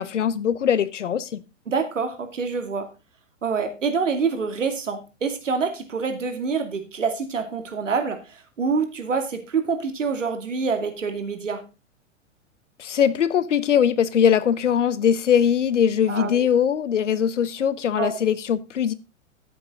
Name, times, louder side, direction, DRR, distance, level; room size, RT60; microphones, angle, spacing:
voice 1, 0.0-1.4 12.8-18.9, left 8 dB, 70° left, 1.1 m, -21 dB
voice 2, 1.7-2.9 3.4-11.6 16.1-16.5 18.0-18.2, right 5 dB, 75° right, 2.6 m, -26 dB
14.0 x 7.6 x 3.8 m
figure-of-eight pair, 105°, 38 cm